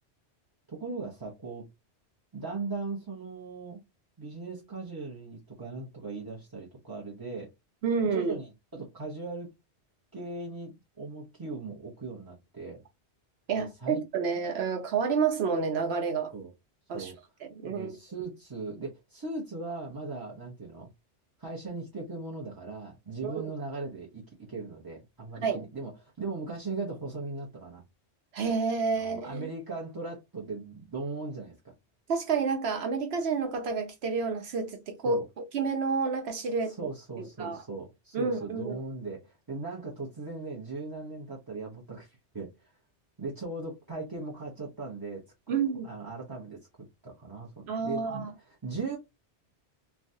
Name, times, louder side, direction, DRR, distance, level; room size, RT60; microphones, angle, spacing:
voice 1, 0.7-1.7 2.3-3.8 4.2-7.5 8.0-9.5 10.1-12.8 13.6-14.0 16.3-16.5 16.9-17.2 17.6-20.9 21.4-24.2 24.5-27.8 28.9-31.6 35.0-35.2 36.7-42.7 43.2-45.2 45.8-46.6 47.0-47.5 47.8-49.0, right 3 dB, 25° right, 0.6 m, -38 dB
voice 2, 7.8-8.3 13.5-16.3 16.9-17.1 17.4-18.0 23.2-23.4 25.4-25.6 28.3-29.5 32.1-35.2 35.5-36.8 37.2-37.6 38.1-38.8 45.5-45.9 47.7-48.3, right 5 dB, 70° right, 0.9 m, -29 dB
3.3 x 2.3 x 2.6 m
omnidirectional pair, 1.2 m